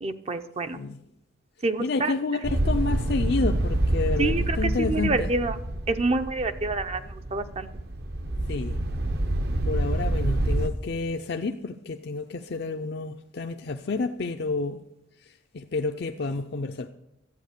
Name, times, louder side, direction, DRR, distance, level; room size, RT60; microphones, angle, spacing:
voice 1, 0.0-0.8 1.6-2.1 4.2-5.6 5.9-7.7, right 3 dB, 30° right, 0.6 m, -27 dB
voice 2, 1.8-5.3 8.5-8.8 9.7-14.8 15.5-16.9, left 3 dB, 55° left, 0.5 m, -29 dB
sound 1, 2.4-10.7, right 1 dB, 55° right, 0.9 m, -27 dB
12.5 x 8.7 x 6.7 m
head